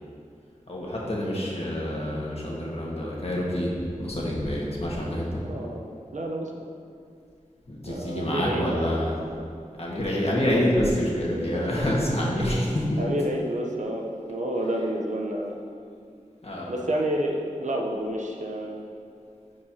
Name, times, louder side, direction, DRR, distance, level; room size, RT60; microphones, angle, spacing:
voice 1, 0.7-5.4 7.7-9.2 9.8-13.0 16.4-16.7, left 1 dB, 50° left, -4 dB, 1.7 m, -27 dB
voice 2, 5.4-5.9 6.1-6.5 7.9-9.3 11.5-11.6 13.0-15.6 16.7-18.8, right 1 dB, 65° right, 0 dB, 0.9 m, -29 dB
10.5 x 4.9 x 2.9 m, 2.4 s
cardioid pair, 45°, 13 cm